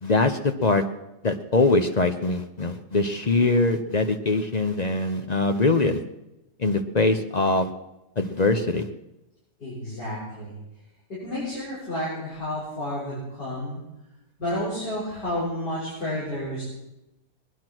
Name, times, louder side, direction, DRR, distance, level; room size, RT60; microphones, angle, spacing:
voice 1, 0.0-0.8 1.2-6.0 6.6-7.7 8.2-8.9, left 3 dB, 50° left, 7 dB, 0.5 m, -22 dB
voice 2, 9.6-10.5 11.1-13.8 14.4-16.7, left 1 dB, 65° left, -9 dB, 6.8 m, -31 dB
19.5 x 11.5 x 6.1 m, 0.94 s
omnidirectional pair, 1.9 m